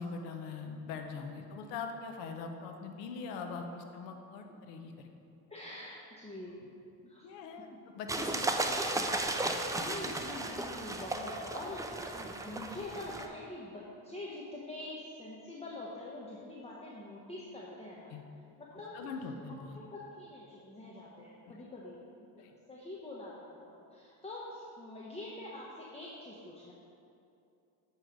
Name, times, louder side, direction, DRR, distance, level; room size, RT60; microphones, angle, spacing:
voice 1, 0.0-5.1 7.2-7.7 7.9-8.8 9.3-9.5 18.1-18.2 18.9-19.8 21.5-21.6 22.4-22.5, left 4 dB, 90° left, 5 dB, 0.8 m, -42 dB
voice 2, 5.5-6.6 7.0-7.3 9.7-18.1 18.6-19.1 19.7-26.7, left 2 dB, 15° left, -5 dB, 0.9 m, -45 dB
sound 1, 8.1-13.3, right 2 dB, 10° right, 0.4 m, -35 dB
9.1 x 3.2 x 5.1 m, 2.6 s
supercardioid pair, 90°, 41 cm